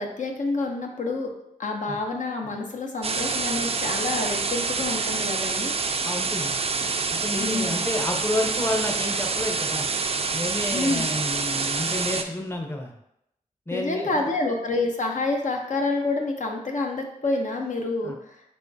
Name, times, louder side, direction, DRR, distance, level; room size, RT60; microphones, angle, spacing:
voice 1, 0.0-1.3 1.6-5.7 7.4-7.7 10.7-11.0 13.7-18.4, left 3 dB, 65° left, 2 dB, 0.7 m, -28 dB
sound 1, 3.0-12.2, right 4 dB, 45° right, 0.4 m, -27 dB
voice 2, 6.0-6.5 7.1-9.9 10.3-12.9 13.7-14.3 18.0-18.2, left 1 dB, 15° left, 2 dB, 0.7 m, -30 dB
4.4 x 3.4 x 2.7 m, 0.79 s
cardioid pair, 40°, 14 cm